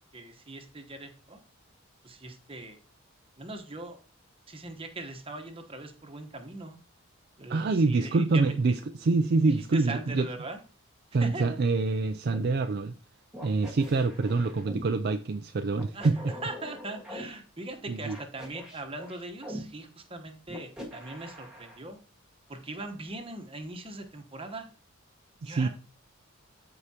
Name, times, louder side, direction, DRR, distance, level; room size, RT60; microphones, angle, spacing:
voice 1, 0.1-1.4 2.0-2.8 3.4-4.0 4.5-6.8 7.4-8.6 9.4-10.6 11.2-11.6 15.9-22.0 22.5-24.7 25.4-25.7, right 2 dB, 25° right, 1.1 m, -40 dB
voice 2, 7.5-10.3 11.1-12.9 13.4-16.2 17.9-18.2 25.4-25.7, right 3 dB, 45° right, 0.4 m, -26 dB
sound 1, 12.3-12.5 13.3-14.9 15.7-17.2 18.1-19.6 20.5-21.8, equal, 5° right, 1.9 m, -42 dB
13.0 x 4.8 x 2.8 m
head